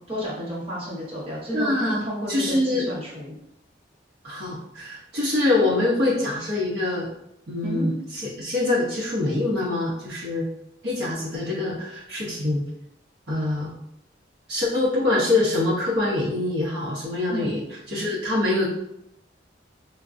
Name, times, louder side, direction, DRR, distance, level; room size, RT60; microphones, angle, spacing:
voice 1, 0.1-3.4 7.6-7.9 17.3-17.5, equal, 30° right, -6 dB, 1.1 m, -31 dB
voice 2, 1.5-2.0 2.3-2.9 4.2-7.1 7.5-10.5 10.8-12.6 13.3-13.8 14.5-17.6 17.9-18.7, left 2 dB, 60° right, -7 dB, 0.9 m, -24 dB
4.4 x 2.2 x 2.5 m, 0.79 s
head